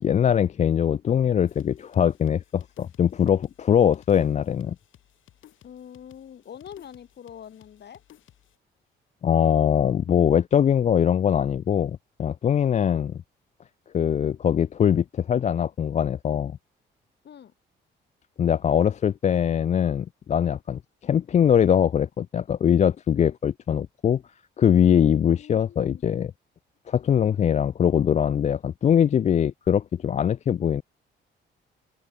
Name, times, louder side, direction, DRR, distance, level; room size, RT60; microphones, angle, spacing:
voice 1, 0.0-4.8 9.2-13.2 13.9-16.6 18.4-24.2 24.6-26.3 26.9-30.8, left 8 dB, 35° left, 0.4 m, -22 dB
sound 1, 1.4-8.6, left 12 dB, 75° left, 5.5 m, -57 dB
voice 2, 5.6-8.0 17.2-17.5 24.8-26.0, left 9 dB, 60° left, 3.3 m, -44 dB
open air
cardioid pair, 90°, 20 cm